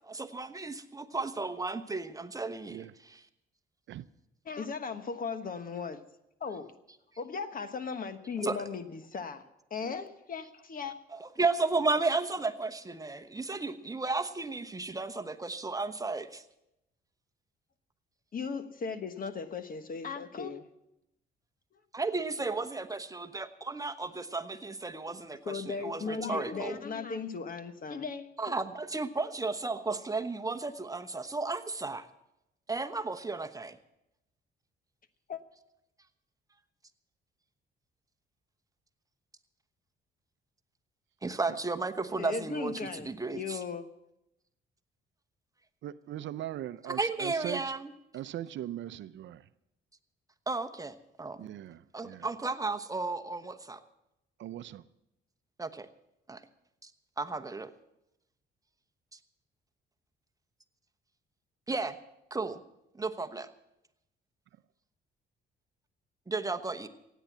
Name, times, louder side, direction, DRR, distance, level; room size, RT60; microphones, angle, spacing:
voice 1, 0.0-3.2 8.4-8.6 11.2-16.4 21.9-26.8 28.4-32.1 32.7-33.8 41.2-43.6 46.8-47.9 50.5-51.5 51.9-53.8 55.6-55.9 56.3-56.4 56.8-56.9 57.2-57.7 61.7-61.9 62.3-62.6 63.0-63.5 66.3-66.9, right 3 dB, 15° right, 1.0 m, -34 dB
voice 2, 4.4-6.0 6.4-6.7 7.2-9.4 9.7-11.0 18.3-20.6 25.4-28.3 35.3-35.4 42.2-43.8, left 5 dB, 45° left, 1.3 m, -37 dB
voice 3, 45.8-47.6 48.1-49.4 51.4-52.3 54.4-54.8, right 12 dB, 70° right, 0.6 m, -40 dB
16.0 x 9.2 x 7.3 m
cardioid pair, 90°, 20 cm